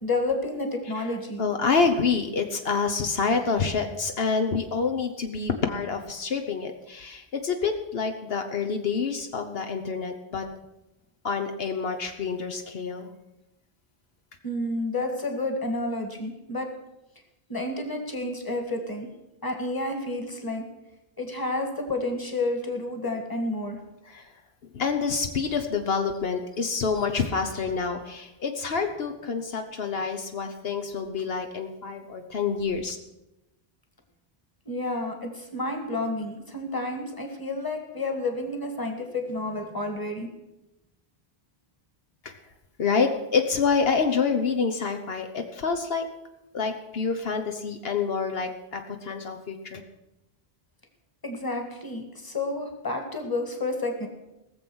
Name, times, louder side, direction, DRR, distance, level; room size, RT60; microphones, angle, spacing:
voice 1, 0.0-1.4 14.4-16.7 17.5-19.1 19.4-20.7 21.2-23.8 26.9-27.4 34.7-40.3 51.2-54.1, left 2 dB, 20° left, 4 dB, 1.7 m, -30 dB
voice 2, 1.4-10.5 11.2-13.1 24.1-24.3 24.7-33.0 42.2-42.4 42.8-46.1 46.5-49.8, left 5 dB, 70° left, 5 dB, 1.1 m, -27 dB
18.5 x 7.1 x 6.2 m, 0.95 s
omnidirectional pair, 1.0 m